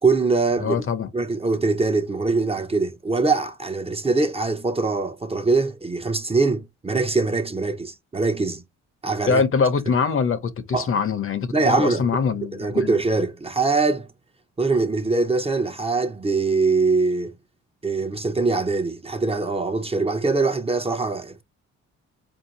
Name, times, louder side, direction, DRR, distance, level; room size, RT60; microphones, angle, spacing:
voice 1, 0.0-0.8 1.1-8.6 9.0-9.4 10.7-10.9 11.5-12.1 12.5-14.1 14.6-17.3 17.8-21.4, right 3 dB, 20° right, 0.7 m, -22 dB
voice 2, 0.6-1.1 9.3-12.9, left 5 dB, 45° left, 0.8 m, -23 dB
4.4 x 2.7 x 2.8 m
cardioid pair, 90°, 30 cm